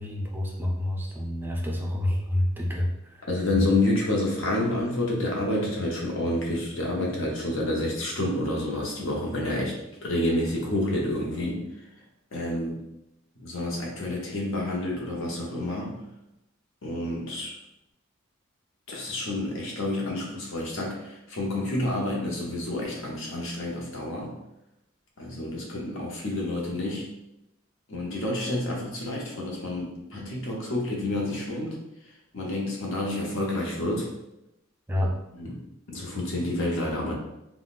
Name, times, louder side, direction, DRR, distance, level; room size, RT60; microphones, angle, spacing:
voice 1, 0.0-3.7 34.9-35.2, left 1 dB, 10° right, -1 dB, 0.4 m, -28 dB
voice 2, 3.3-9.7 10.0-11.6 12.3-12.8 13.4-16.0 16.8-17.5 18.9-24.4 25.2-27.1 27.9-31.8 32.3-34.1 35.3-35.5 35.9-37.1, left 1 dB, 70° left, -2 dB, 0.8 m, -29 dB
3.7 x 2.2 x 2.4 m, 0.89 s
head